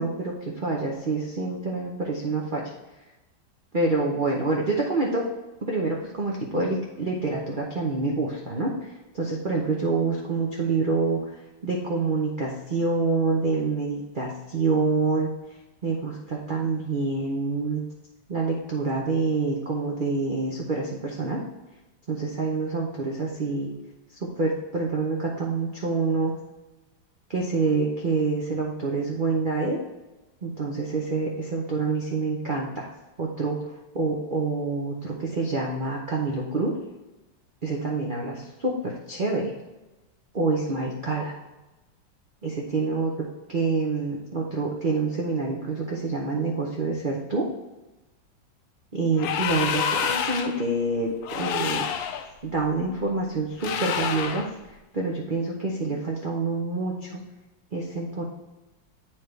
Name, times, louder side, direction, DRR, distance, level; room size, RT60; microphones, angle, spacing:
voice 1, 0.0-2.6 3.7-5.2 5.7-15.3 15.8-17.8 18.3-21.4 22.1-23.7 24.4-26.3 27.3-29.8 30.4-32.9 33.2-36.7 37.6-39.5 40.3-41.4 42.4-43.1 43.5-47.5 48.9-51.9 52.4-54.5 54.9-57.2 57.7-58.2, right 3 dB, 55° right, -2 dB, 0.5 m, -27 dB
sound 1, 49.1-50.6 51.2-52.3 53.6-54.5, left 8 dB, 75° left, 1.2 m, -28 dB
9.0 x 4.6 x 3.3 m, 1.1 s
omnidirectional pair, 2.1 m